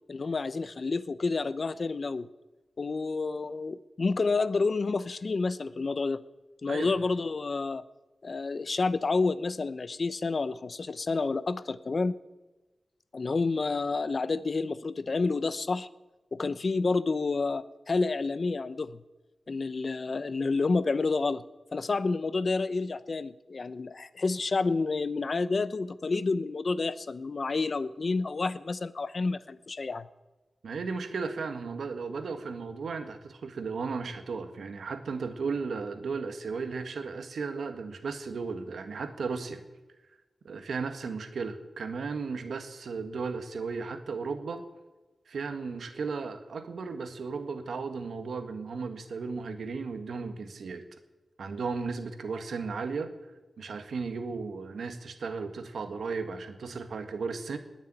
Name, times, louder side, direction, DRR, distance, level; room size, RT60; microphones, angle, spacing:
voice 1, 0.1-2.3 2.8-6.2 6.6-7.8 8.2-12.2 13.1-15.9 16.3-19.0 19.5-21.4 21.7-30.1, left 3 dB, 55° left, 16 dB, 0.7 m, -29 dB
voice 2, 30.6-39.6 40.4-44.6 45.3-50.8 51.4-53.1 53.6-57.6, right 4 dB, 85° right, 8 dB, 1.7 m, -35 dB
19.5 x 7.2 x 9.0 m, 1.1 s
wide cardioid pair, 70°, 0 cm